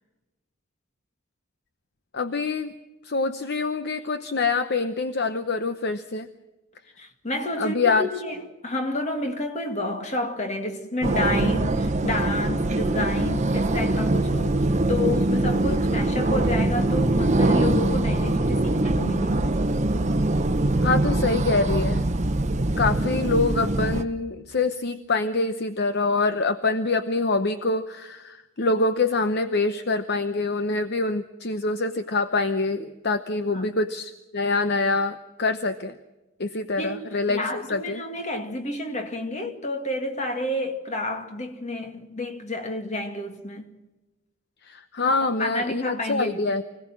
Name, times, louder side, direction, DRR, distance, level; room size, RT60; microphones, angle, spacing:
voice 1, 2.1-2.7 3.0-6.3 7.6-8.1 20.8-22.0 22.8-36.0 36.4-38.0 44.6-46.6, left 3 dB, 50° left, 0.8 m, -25 dB
voice 2, 7.0-19.6 33.5-33.7 36.8-43.7 45.1-46.5, left 1 dB, 35° left, 2.1 m, -30 dB
sound 1, 11.0-24.0, right 2 dB, 35° right, 0.9 m, -23 dB
25.5 x 17.5 x 7.5 m
head